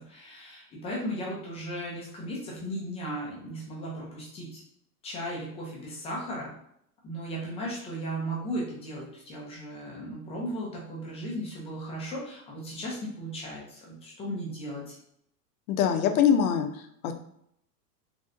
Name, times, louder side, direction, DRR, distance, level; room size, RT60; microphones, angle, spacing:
voice 1, 0.0-4.6 5.0-6.5 7.0-15.0, equal, 15° left, -4 dB, 0.3 m, -36 dB
voice 2, 15.7-17.1, left 8 dB, 60° left, 7 dB, 0.6 m, -24 dB
3.3 x 2.6 x 2.5 m, 0.72 s
hypercardioid pair, 120°, 48 cm